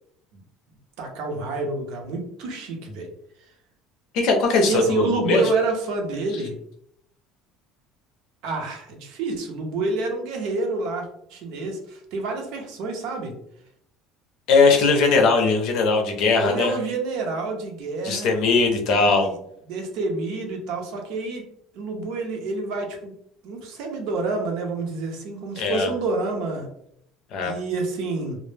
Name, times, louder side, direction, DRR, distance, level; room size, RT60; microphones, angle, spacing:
voice 1, 1.0-3.1 4.7-6.5 8.4-13.3 16.4-18.3 19.0-19.4 19.7-21.5 21.7-23.1 23.4-26.7 27.4-28.4, right 3 dB, 70° right, 2 dB, 0.6 m, -28 dB
voice 2, 4.1-5.5 14.5-16.7 18.0-19.3 25.6-25.9 27.3-27.5, left 4 dB, 60° left, 3 dB, 0.5 m, -19 dB
2.0 x 2.0 x 3.2 m, 0.71 s
cardioid pair, 145°, 0 cm